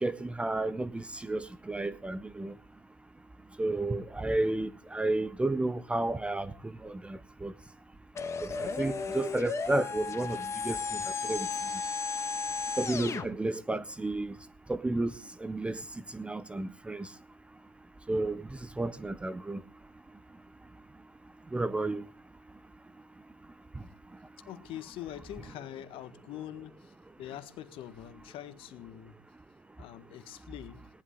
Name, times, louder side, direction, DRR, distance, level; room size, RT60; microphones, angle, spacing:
voice 1, 0.0-2.6 3.6-7.5 8.4-11.5 12.8-14.4 14.7-15.1 15.4-15.8 16.1-17.1 18.1-19.6 21.5-22.0, right 2 dB, 10° right, 0.7 m, -32 dB
sound 1, 8.2-13.3, left 5 dB, 25° left, 1.6 m, -34 dB
voice 2, 24.5-29.2 29.8-30.9, left 12 dB, 50° left, 1.5 m, -44 dB
18.0 x 11.0 x 3.8 m
hypercardioid pair, 90°, 12 cm